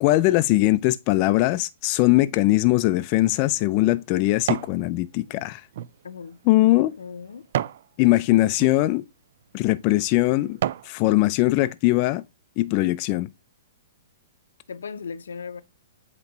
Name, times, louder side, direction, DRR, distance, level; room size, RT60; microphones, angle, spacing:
voice 1, 0.0-5.6 6.5-6.9 8.0-9.0 9.5-10.6 10.8-12.2 12.6-13.3, left 18 dB, 40° left, 0.4 m, -20 dB
sound 1, 3.0-4.8 5.3-7.9 8.5-8.7 9.4-9.6 10.1-11.0 11.4-11.5, right 11 dB, 60° right, 0.4 m, -32 dB
voice 2, 6.0-6.4 7.0-7.5 14.7-15.6, left 5 dB, 85° left, 0.7 m, -37 dB
7.9 x 3.0 x 4.0 m
hypercardioid pair, 140°, 0 cm